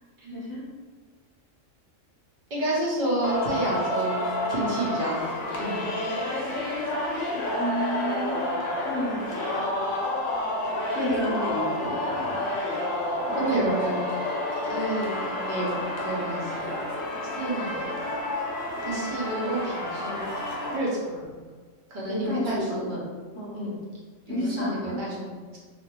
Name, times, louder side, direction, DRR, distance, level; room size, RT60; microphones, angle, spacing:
voice 1, 0.3-0.6 7.5-8.4 8.8-9.3 10.9-12.5 13.3-13.7 22.0-22.9 23.3-23.7 24.3-25.0, equal, 15° left, -8 dB, 0.6 m, -31 dB
voice 2, 2.5-5.8 13.4-14.0 14.7-15.8 16.0-16.7 17.4-18.0 18.8-20.2 20.7-21.4 21.9-23.1 23.5-23.8 24.3-25.6, right 1 dB, 50° right, -5 dB, 0.7 m, -30 dB
Singing, 3.2-20.8, left 1 dB, 85° left, 1.0 m, -29 dB
2.4 x 2.1 x 2.9 m, 1.5 s
omnidirectional pair, 1.3 m